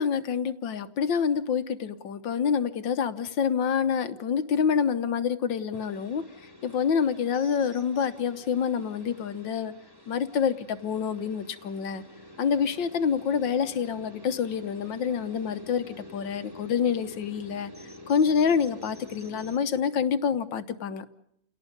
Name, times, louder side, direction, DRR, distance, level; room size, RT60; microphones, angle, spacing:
voice 1, 0.0-9.7 10.1-12.0 12.4-17.7 18.1-21.1, left 7 dB, 80° left, 11 dB, 1.8 m, -27 dB
sound 1, 5.7-19.6, left 2 dB, 10° right, 2.2 m, -48 dB
29.5 x 18.0 x 5.2 m, 0.73 s
omnidirectional pair, 2.0 m